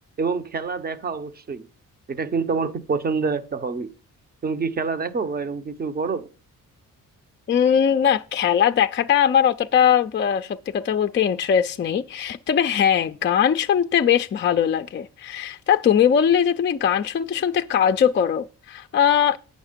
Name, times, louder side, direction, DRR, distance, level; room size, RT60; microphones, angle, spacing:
voice 1, 0.2-1.7 2.1-3.9 4.4-6.3, right 4 dB, 30° right, 0.7 m, -26 dB
voice 2, 7.5-19.4, left 8 dB, 35° left, 0.4 m, -20 dB
8.9 x 6.5 x 5.0 m
cardioid pair, 120°, 34 cm